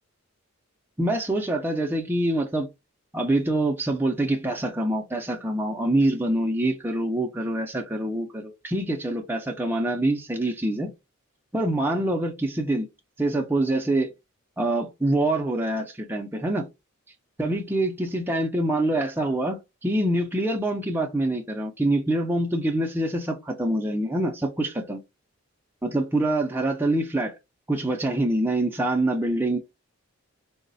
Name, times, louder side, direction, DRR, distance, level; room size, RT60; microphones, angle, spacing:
voice 1, 1.0-2.7 3.1-10.9 11.5-12.9 13.2-14.1 14.6-16.7 17.4-25.0 25.8-27.3 27.7-29.6, right 1 dB, 10° right, 0.3 m, -25 dB
3.8 x 2.0 x 2.5 m
head